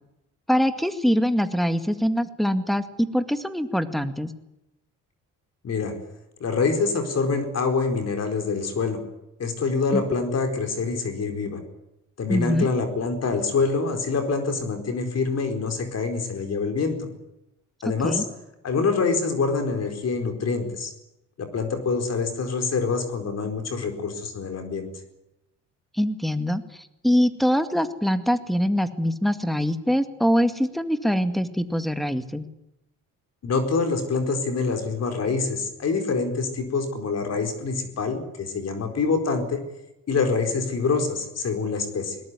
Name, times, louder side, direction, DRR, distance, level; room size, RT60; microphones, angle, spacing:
voice 1, 0.5-4.3 9.9-10.0 12.3-12.7 17.8-18.2 25.9-32.5, equal, ahead, 9 dB, 2.0 m, -23 dB
voice 2, 5.6-5.9 6.4-9.0 9.4-11.6 12.2-17.1 17.8-18.2 18.6-20.9 21.4-24.9 33.4-39.6 40.1-42.2, left 4 dB, 50° left, 6 dB, 4.5 m, -25 dB
21.5 x 19.5 x 9.8 m, 0.89 s
cardioid pair, 90°, 32 cm